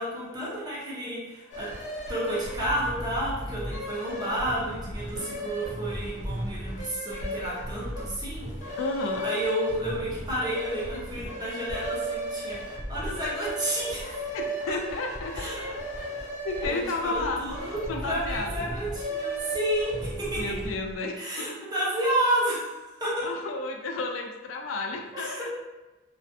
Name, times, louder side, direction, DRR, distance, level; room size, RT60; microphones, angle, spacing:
voice 1, 0.0-1.7 2.1-8.5 9.2-12.6 12.9-14.2 14.7-14.8 15.3-15.8 16.6-20.6 21.2-23.3 25.1-25.5, right 1 dB, 20° right, -7 dB, 0.7 m, -31 dB
sound 1, 1.5-20.9, right 1 dB, 40° left, 0.6 m, -35 dB
voice 2, 8.8-9.3 14.3-15.5 16.4-17.4 17.9-18.7 20.4-21.7 23.2-25.4, left 3 dB, 80° left, 3 dB, 0.3 m, -32 dB
2.4 x 2.2 x 2.5 m, 1.1 s
head